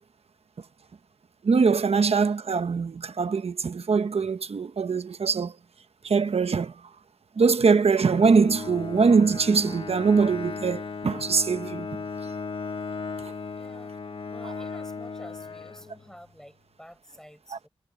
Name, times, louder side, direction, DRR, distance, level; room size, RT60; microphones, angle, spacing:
voice 1, 1.4-5.5 6.0-6.8 7.4-11.9 13.2-13.3 14.4-14.5 17.5-17.6, right 5 dB, 75° right, 1.0 m, -22 dB
Bowed string instrument, 8.1-16.3, left 4 dB, 60° left, 1.4 m, -36 dB
voice 2, 13.5-14.0 14.3-17.7, equal, 5° left, 5.4 m, -49 dB
wide cardioid pair, 75°, 11 cm